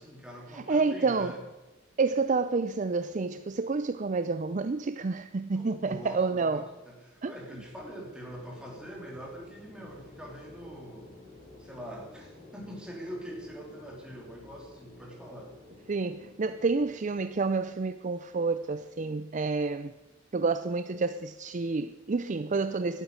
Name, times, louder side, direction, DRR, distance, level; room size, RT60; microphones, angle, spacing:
voice 1, 0.0-1.5 5.6-11.1 11.6-15.5, equal, 5° right, 3.1 m, -44 dB
voice 2, 0.5-1.4 2.0-6.6 7.2-7.3 15.9-19.9 20.3-23.0, right 4 dB, 40° right, 0.5 m, -29 dB
sound 1, 7.5-17.6, left 2 dB, 35° left, 6.0 m, -52 dB
12.0 x 9.2 x 9.5 m
head